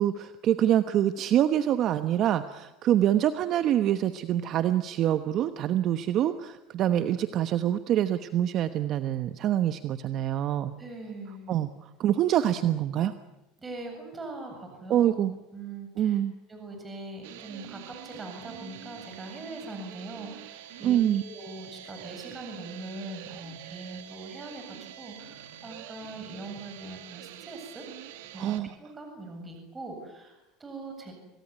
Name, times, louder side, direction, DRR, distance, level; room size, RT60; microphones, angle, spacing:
voice 1, 0.0-10.7 11.5-11.7 12.0-13.1 14.9-15.3 16.0-16.3 20.8-21.2 28.4-28.7, right 11 dB, 50° right, 10 dB, 1.1 m, -25 dB
voice 2, 10.8-11.6 13.6-15.1 15.5-16.2 16.5-27.9 28.3-31.1, right 2 dB, 20° right, 4 dB, 7.6 m, -41 dB
sound 1, 17.2-28.6, right 12 dB, 85° right, 2.3 m, -46 dB
27.0 x 19.0 x 9.7 m, 0.99 s
supercardioid pair, 115°, 0 cm